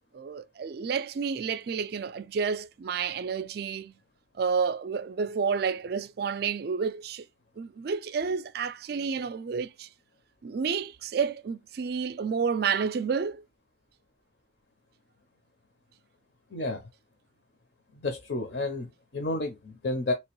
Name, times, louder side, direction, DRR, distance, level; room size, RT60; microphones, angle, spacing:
voice 1, 0.1-3.9 4.4-7.2 7.6-9.9 10.4-13.4, right 6 dB, 55° right, 0.3 m, -30 dB
voice 2, 16.5-16.8 18.0-20.1, left 2 dB, 60° left, 0.6 m, -31 dB
3.7 x 2.9 x 3.0 m
head